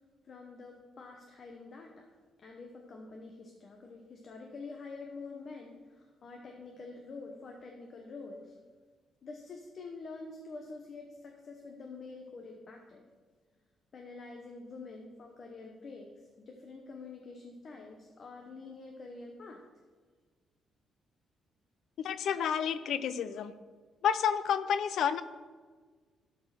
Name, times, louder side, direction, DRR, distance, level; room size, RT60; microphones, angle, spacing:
voice 1, 0.3-2.1 2.4-8.6 9.2-13.1 13.9-16.1 16.4-19.6, left 3 dB, 40° left, 2 dB, 1.0 m, -47 dB
voice 2, 22.0-23.5 24.0-25.2, left 8 dB, 65° left, 14 dB, 0.5 m, -30 dB
12.0 x 4.7 x 6.0 m, 1.4 s
cardioid pair, 145°, 0 cm